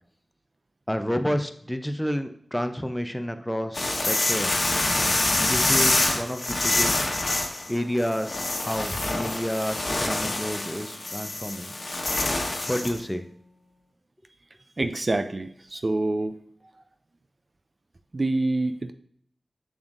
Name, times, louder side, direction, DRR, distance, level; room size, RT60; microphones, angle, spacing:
voice 1, 0.9-4.8 5.4-7.0 7.7-11.7 12.7-13.2, equal, 5° left, 8 dB, 0.6 m, -30 dB
sound 1, 3.7-13.0, left 2 dB, 50° left, 1.2 m, -26 dB
voice 2, 14.8-16.4 18.1-18.9, right 2 dB, 45° right, 9 dB, 0.4 m, -26 dB
7.0 x 6.3 x 2.6 m, 0.66 s
wide cardioid pair, 65°, 0 cm